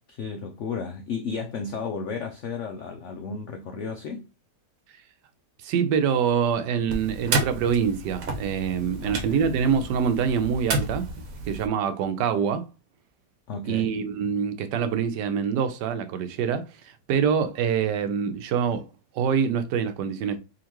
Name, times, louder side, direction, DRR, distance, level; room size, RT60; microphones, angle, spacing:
voice 1, 0.1-4.2 9.0-9.4 13.5-14.0, left 5 dB, 80° left, 0.6 m, -33 dB
voice 2, 5.6-11.1 11.5-12.7 13.7-16.7 17.1-18.8 19.1-20.4, right 7 dB, 85° right, 1.2 m, -25 dB
sound 1, 6.9-11.7, right 3 dB, 60° right, 1.1 m, -31 dB
3.7 x 2.8 x 2.9 m
omnidirectional pair, 1.8 m